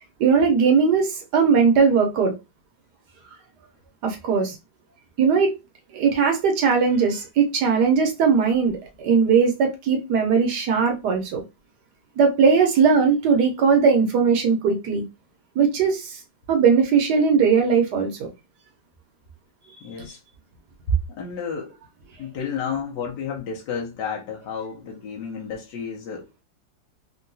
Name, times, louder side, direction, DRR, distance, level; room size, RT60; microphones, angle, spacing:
voice 1, 0.2-2.3 4.0-4.6 5.2-5.5 5.9-11.4 12.2-15.0 15.6-16.2 16.5-18.3, right 5 dB, 70° right, 1.2 m, -19 dB
voice 2, 19.8-20.2 20.9-21.8 22.2-26.4, left 2 dB, 70° left, 1.2 m, -30 dB
3.6 x 2.2 x 2.6 m
omnidirectional pair, 2.0 m